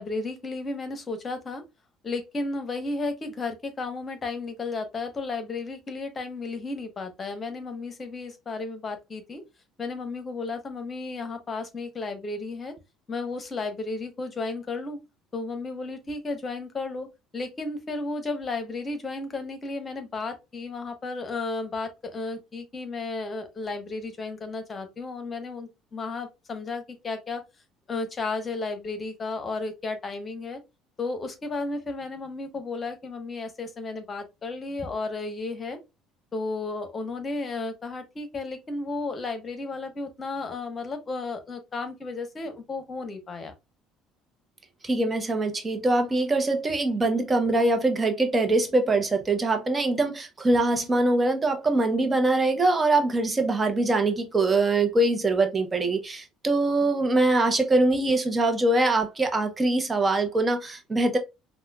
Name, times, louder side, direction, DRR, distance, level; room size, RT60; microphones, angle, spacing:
voice 1, 0.0-1.6 2.0-9.4 9.8-12.7 13.1-15.0 15.3-17.1 17.3-27.4 27.9-30.6 31.0-35.8 36.3-43.5, left 3 dB, 30° left, 1.2 m, -33 dB
voice 2, 44.8-61.2, right 2 dB, 25° right, 0.9 m, -23 dB
5.4 x 2.4 x 2.3 m
figure-of-eight pair, 60°, 0 cm